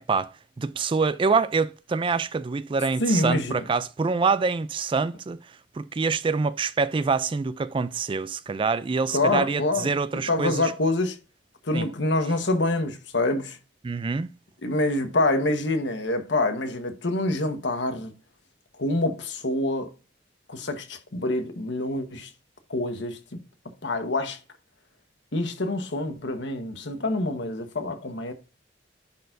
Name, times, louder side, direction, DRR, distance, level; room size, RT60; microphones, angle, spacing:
voice 1, 0.6-5.4 5.7-10.7 11.7-11.9 13.8-14.3, right 4 dB, 25° right, 0.3 m, -25 dB
voice 2, 3.0-3.6 9.1-11.2 11.6-13.6 14.6-18.1 18.8-19.9 20.5-22.3 22.7-23.4 23.8-24.4 25.3-28.3, left 2 dB, 70° left, 1.3 m, -26 dB
10.5 x 4.5 x 2.6 m
head